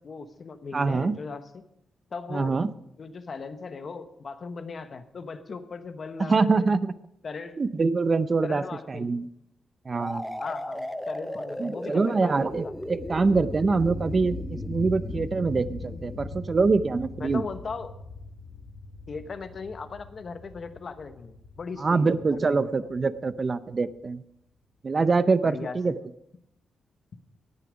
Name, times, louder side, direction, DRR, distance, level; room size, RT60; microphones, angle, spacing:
voice 1, 0.0-1.6 2.1-2.6 3.0-6.7 7.2-7.6 8.4-9.1 10.4-12.7 17.2-17.9 19.1-22.8 25.4-25.9, left 4 dB, 50° left, 10 dB, 1.0 m, -38 dB
voice 2, 0.7-1.2 2.3-2.7 6.2-6.9 7.6-9.3 9.9-10.4 11.6-17.4 21.8-24.2 24.8-25.9, right 4 dB, 35° right, 14 dB, 0.5 m, -25 dB
sound 1, 10.0-17.7, left 1 dB, 5° left, 0.6 m, -37 dB
sound 2, 12.4-24.0, left 3 dB, 80° left, 4.1 m, -40 dB
18.0 x 6.8 x 5.1 m, 0.81 s
cardioid pair, 100°, 0 cm